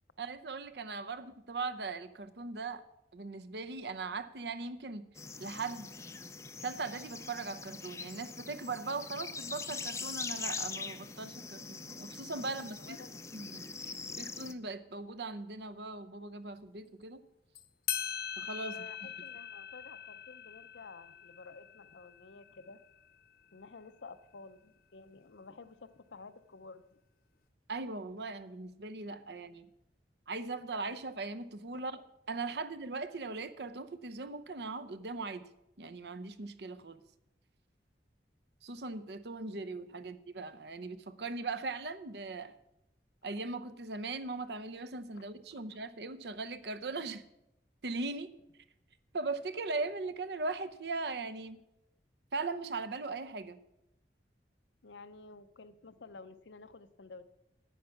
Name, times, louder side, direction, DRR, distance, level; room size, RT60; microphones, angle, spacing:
voice 1, 0.2-2.8 3.1-5.1 5.4-5.9 6.6-13.0 13.3-13.7 14.2-17.2 18.4-19.1 27.7-29.7 30.3-32.0 32.3-35.4 35.8-37.0 38.6-42.5 43.2-47.2 47.8-48.3 49.1-51.6 52.3-53.6, right 3 dB, 65° right, 12 dB, 0.7 m, -39 dB
sound 1, 5.2-14.5, left 4 dB, 15° left, 0.5 m, -43 dB
voice 2, 12.8-13.2 18.7-22.8 23.5-27.0 45.1-45.3 54.8-57.3, left 4 dB, 90° left, 12 dB, 0.7 m, -52 dB
sound 2, 17.5-17.6 17.9-23.0, left 9 dB, 55° left, 0.8 m, -41 dB
10.0 x 9.1 x 5.8 m, 0.84 s
head